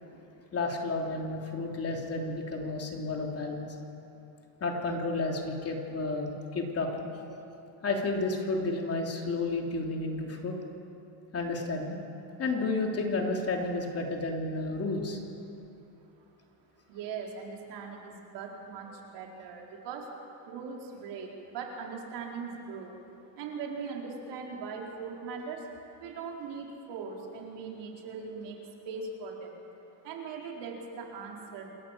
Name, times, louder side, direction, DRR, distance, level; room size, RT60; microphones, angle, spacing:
voice 1, 0.5-3.7 4.6-7.4 7.8-10.5 11.3-12.0 12.4-15.2, left 3 dB, 30° left, 1 dB, 3.3 m, -31 dB
voice 2, 16.9-20.1 20.5-23.0 23.4-25.7 26.0-29.6 30.0-31.7, right 5 dB, 65° right, 0 dB, 4.2 m, -40 dB
28.0 x 14.0 x 7.4 m, 2.9 s
cardioid pair, 115°, 46 cm